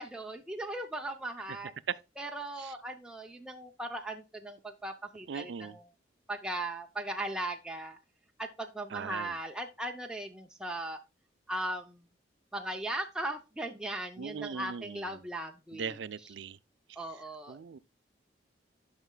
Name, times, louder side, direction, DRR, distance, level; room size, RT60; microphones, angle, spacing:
voice 1, 0.0-1.7 2.2-5.9 6.3-8.0 8.4-11.0 11.5-12.0 12.5-16.0 17.0-17.6, right 1 dB, 5° right, 0.5 m, -38 dB
voice 2, 5.3-5.7 8.9-9.3 14.2-15.0 15.7-16.6 17.5-17.8, right 6 dB, 75° right, 0.4 m, -40 dB
11.0 x 5.7 x 2.2 m
head